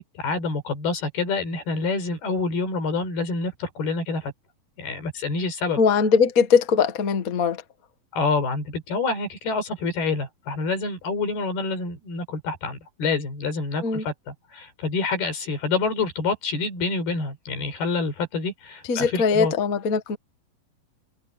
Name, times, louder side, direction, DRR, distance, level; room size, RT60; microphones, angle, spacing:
voice 1, 0.0-4.3 4.8-5.8 8.1-19.5, left 4 dB, 85° left, 6.9 m, -27 dB
voice 2, 5.8-7.6 13.8-14.0 18.9-20.2, left 5 dB, 65° left, 0.8 m, -21 dB
omnidirectional pair, 4.3 m